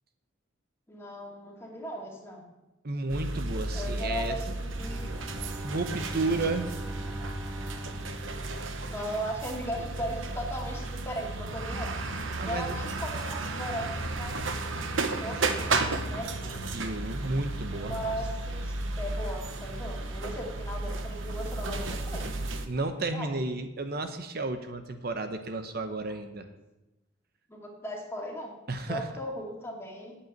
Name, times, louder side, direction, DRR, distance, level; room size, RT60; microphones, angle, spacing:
voice 1, 0.9-2.5 3.7-5.1 8.8-16.6 17.7-22.3 23.0-23.3 27.5-30.2, equal, 15° left, -1 dB, 2.2 m, -38 dB
voice 2, 2.8-4.4 5.6-6.7 12.4-12.8 16.7-18.1 22.7-26.5 28.7-29.1, right 2 dB, 50° right, 7 dB, 0.8 m, -32 dB
sound 1, 3.1-22.7, right 2 dB, 80° right, 1.1 m, -34 dB
Bowed string instrument, 4.7-9.5, right 1 dB, 10° right, 0.6 m, -41 dB
8.7 x 8.0 x 8.9 m, 1.0 s
head